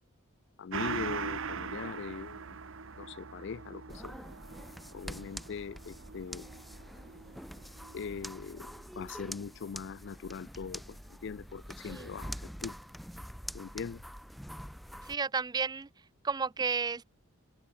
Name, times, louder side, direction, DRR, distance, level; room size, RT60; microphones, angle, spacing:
voice 1, 0.6-2.7 3.0-4.2 4.9-6.5 7.9-12.8 13.5-14.0, left 6 dB, 55° left, 0.4 m, -41 dB
Gong, 0.7-9.7 10.0-10.1, right 5 dB, 60° right, 0.9 m, -42 dB
sound 1, 3.9-15.1, equal, ahead, 1.3 m, -45 dB
voice 2, 15.0-15.9 16.2-17.0, right 5 dB, 20° right, 0.4 m, -32 dB
head